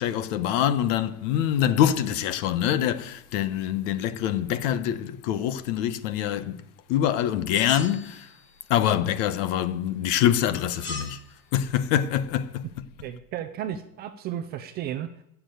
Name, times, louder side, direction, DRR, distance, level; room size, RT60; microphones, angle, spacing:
voice 1, 0.0-6.6 6.9-8.3 8.7-11.2 11.5-12.7, left 10 dB, 50° left, 1.2 m, -25 dB
sound 1, 7.6-8.6 10.7-11.2, left 3 dB, 20° left, 2.9 m, -38 dB
voice 2, 13.0-15.2, right 10 dB, 20° right, 0.4 m, -34 dB
15.0 x 7.2 x 9.2 m
supercardioid pair, 155°, 47 cm